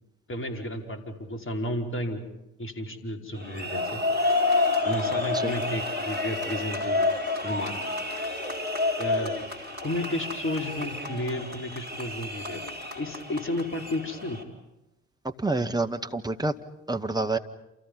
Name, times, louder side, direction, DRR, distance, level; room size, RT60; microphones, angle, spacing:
voice 1, 0.3-2.2 2.6-4.0 4.8-7.0 7.4-7.9 9.0-9.4 9.8-12.6 13.0-14.4, left 1 dB, 30° left, 5 dB, 5.0 m, -32 dB
sound 1, 3.3-14.4, left 2 dB, 90° right, 3.2 m, -29 dB
voice 2, 15.4-16.5 16.9-17.4, right 2 dB, 10° right, 6 dB, 1.8 m, -27 dB
29.0 x 28.5 x 5.5 m, 0.93 s
figure-of-eight pair, 50°, 41 cm